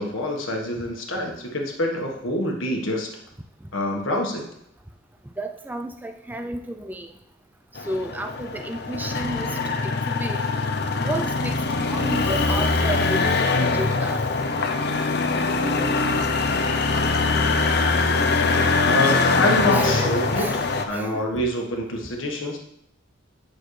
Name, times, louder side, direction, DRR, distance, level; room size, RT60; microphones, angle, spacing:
voice 1, 0.0-3.1 3.7-4.5 18.9-20.5 20.9-22.6, left 1 dB, 85° left, 1 dB, 1.4 m, -26 dB
voice 2, 5.4-7.1 7.8-10.4 11.0-11.6 11.9-14.2 18.5-18.6 19.7-20.7 20.9-21.3, right 1 dB, 10° right, 5 dB, 0.4 m, -32 dB
sound 1, 7.8-20.8, left 3 dB, 55° left, 0.6 m, -22 dB
9.0 x 6.4 x 3.2 m, 0.77 s
head